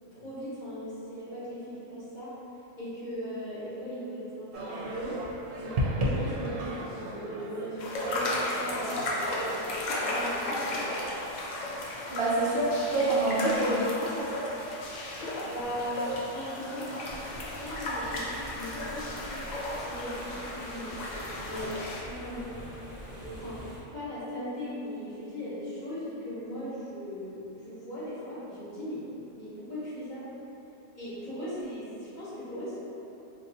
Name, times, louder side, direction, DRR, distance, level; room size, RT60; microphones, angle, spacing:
voice 1, 0.0-2.3 2.8-5.2 5.5-9.3 9.9-10.9 15.1-16.9 17.6-21.0 21.4-22.5 23.2-23.6 23.9-30.3 30.9-32.7, equal, 40° left, -11 dB, 0.9 m, -38 dB
sound 1, 4.5-9.7, equal, 85° right, 1.0 m, -34 dB
sound 2, 7.8-22.0, left 1 dB, 70° left, 0.4 m, -35 dB
voice 2, 12.1-14.3, right 2 dB, 60° right, -8 dB, 0.8 m, -26 dB
sound 3, 17.1-23.8, equal, 35° right, 0.8 m, -45 dB
2.6 x 2.4 x 3.8 m, 3.0 s
omnidirectional pair, 1.3 m